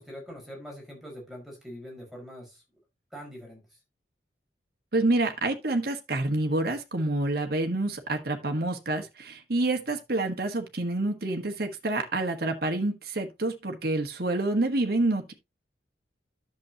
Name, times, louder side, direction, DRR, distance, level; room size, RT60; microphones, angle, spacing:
voice 1, 0.0-2.6 3.1-3.6, equal, ahead, 5.0 m, -43 dB
voice 2, 4.9-15.3, right 2 dB, 60° right, 1.4 m, -28 dB
11.0 x 7.2 x 2.9 m
head